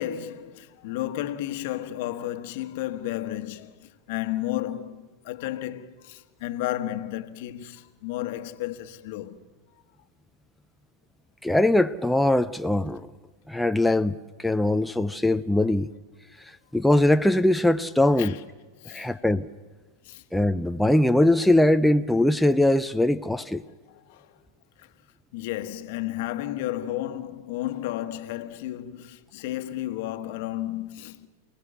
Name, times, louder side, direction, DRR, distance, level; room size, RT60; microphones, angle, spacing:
voice 1, 0.0-9.4 18.2-18.4 18.8-19.1 20.0-20.2 23.9-24.4 24.8-24.9 25.3-31.3, left 14 dB, 60° left, 1.4 m, -33 dB
voice 2, 11.4-13.1 13.5-15.9 16.7-18.3 18.9-19.5 20.3-23.6, left 1 dB, 5° left, 0.6 m, -21 dB
28.5 x 18.0 x 7.0 m
hypercardioid pair, 100°, 0 cm